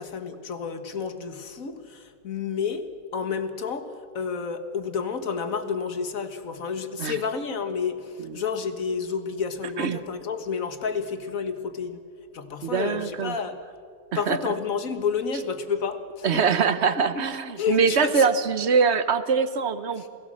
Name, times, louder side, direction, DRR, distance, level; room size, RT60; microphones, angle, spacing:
voice 1, 0.0-12.0 12.3-13.6 14.1-16.4 17.1-17.2 17.6-18.3 20.0-20.1, left 6 dB, 50° left, 9 dB, 1.8 m, -30 dB
voice 2, 12.6-13.3 14.1-14.4 16.2-20.1, right 6 dB, 50° right, 12 dB, 0.9 m, -23 dB
28.0 x 17.5 x 7.6 m, 2.2 s
omnidirectional pair, 2.0 m